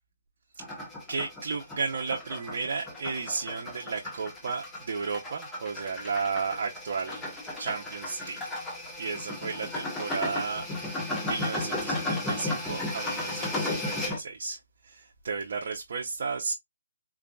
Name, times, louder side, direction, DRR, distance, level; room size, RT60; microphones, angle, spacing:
sound 1, 0.6-14.2, left 2 dB, 10° left, 0.6 m, -35 dB
voice 1, 1.1-7.3 7.6-8.4 8.9-16.5, right 5 dB, 55° right, 0.6 m, -34 dB
3.9 x 2.4 x 2.2 m
hypercardioid pair, 160°, 0 cm